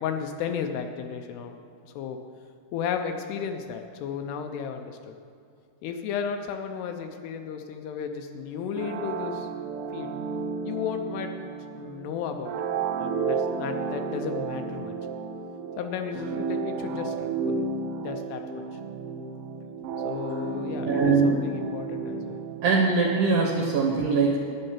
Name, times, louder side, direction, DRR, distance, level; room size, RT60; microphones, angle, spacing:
voice 1, 0.0-1.6 1.9-2.2 2.7-5.2 5.8-9.5 9.9-10.1 10.6-11.3 11.7-12.5 13.0-14.9 15.8-17.5 18.0-18.6 20.0-22.4, left 7 dB, 80° left, 5 dB, 2.6 m, -34 dB
sound 1, 8.8-23.3, right 4 dB, 85° right, 2.7 m, -32 dB
voice 2, 20.9-21.4 22.6-24.4, right 4 dB, 65° right, -2 dB, 2.2 m, -22 dB
10.5 x 9.5 x 5.7 m, 2.4 s
omnidirectional pair, 5.0 m